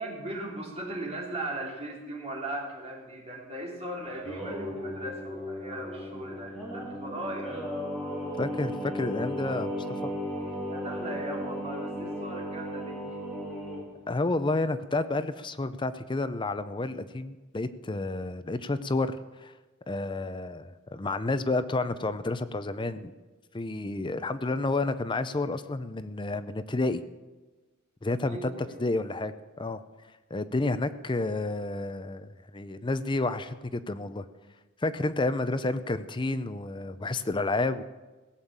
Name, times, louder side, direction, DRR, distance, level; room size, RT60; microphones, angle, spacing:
voice 1, 0.0-7.6 10.7-13.1 28.3-28.8, right 1 dB, 30° right, -3 dB, 3.3 m, -38 dB
Singing, 4.0-13.8, equal, 5° left, 3.9 m, -35 dB
voice 2, 8.4-10.1 14.1-19.5 19.9-23.1 23.5-27.0 28.0-28.5 28.8-29.8 30.3-34.2 34.8-37.8, left 2 dB, 25° left, 12 dB, 0.5 m, -30 dB
17.0 x 7.1 x 7.4 m, 1.2 s
head